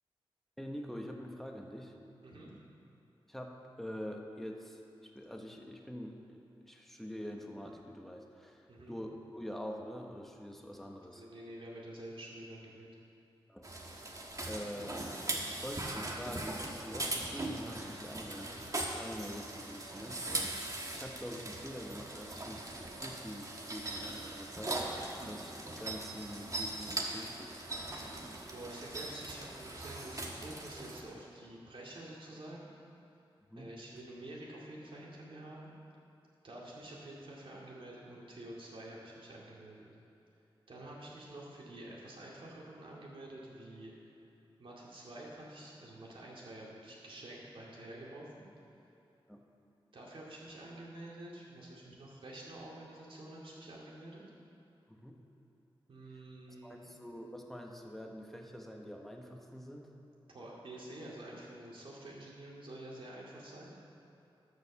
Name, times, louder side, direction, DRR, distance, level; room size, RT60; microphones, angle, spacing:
voice 1, 0.6-1.9 3.3-11.2 13.5-13.7 14.5-15.1 15.5-24.8 25.2-27.6 33.5-33.7 49.3-49.4 54.9-55.2 56.6-59.9, equal, 5° left, 1 dB, 1.2 m, -45 dB
voice 2, 11.1-12.9 28.0-28.2 28.5-32.7 33.5-35.7 36.4-39.9 40.7-43.9 44.6-48.4 49.9-54.2 55.9-56.9 60.3-63.7, right 1 dB, 65° right, -4 dB, 2.5 m, -48 dB
sound 1, 13.6-31.0, right 2 dB, 35° right, 1.3 m, -40 dB
12.5 x 5.2 x 7.2 m, 2.9 s
cardioid pair, 65°, 10 cm